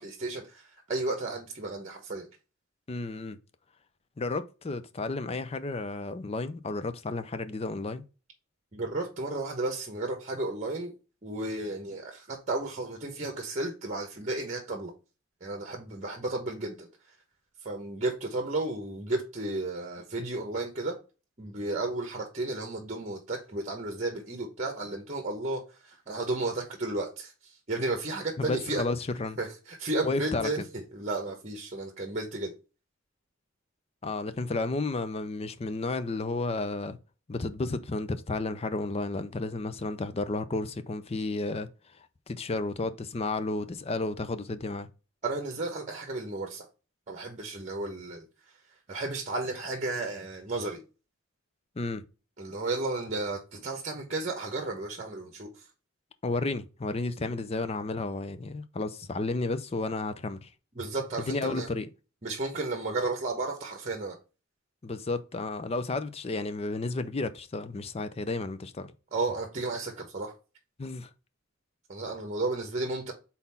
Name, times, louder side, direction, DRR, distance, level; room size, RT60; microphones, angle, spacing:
voice 1, 0.0-2.3 8.7-10.9 11.2-14.9 15.4-16.9 17.6-21.0 21.4-28.8 29.4-32.5 45.2-46.7 47.1-48.2 48.9-50.8 52.4-55.6 60.7-61.7 62.2-64.2 69.1-70.3 71.9-73.1, right 2 dB, 35° right, 1.1 m, -33 dB
voice 2, 2.9-3.4 4.2-8.0 28.4-29.4 30.0-30.6 34.0-37.0 37.3-41.7 42.0-44.9 51.8-52.0 56.2-60.5 61.3-61.9 64.8-68.9 70.8-71.1, left 3 dB, 30° left, 0.5 m, -32 dB
4.2 x 4.1 x 5.6 m
head